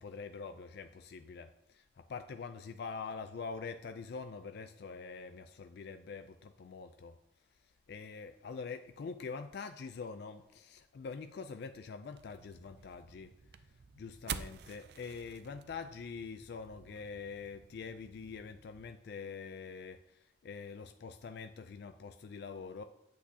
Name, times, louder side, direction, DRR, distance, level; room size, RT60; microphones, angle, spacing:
voice 1, 0.0-7.2 7.5-22.8, left 5 dB, 55° left, 9 dB, 0.3 m, -45 dB
sound 1, 12.2-18.9, right 7 dB, 55° right, 0.4 m, -49 dB
8.4 x 8.2 x 2.8 m, 0.86 s
head